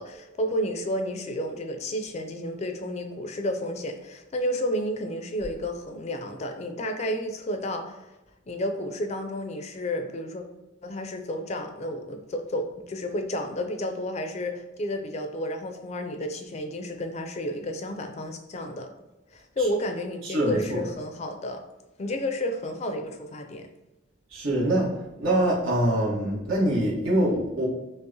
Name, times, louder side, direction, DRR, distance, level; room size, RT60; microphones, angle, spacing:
voice 1, 0.0-8.1 8.5-10.4 10.8-18.9 19.3-21.6 22.0-23.7, left 1 dB, 35° left, 5 dB, 0.4 m, -31 dB
voice 2, 20.2-20.9 24.3-27.7, right 1 dB, 85° right, -4 dB, 1.2 m, -24 dB
5.3 x 2.0 x 2.7 m, 1.0 s
head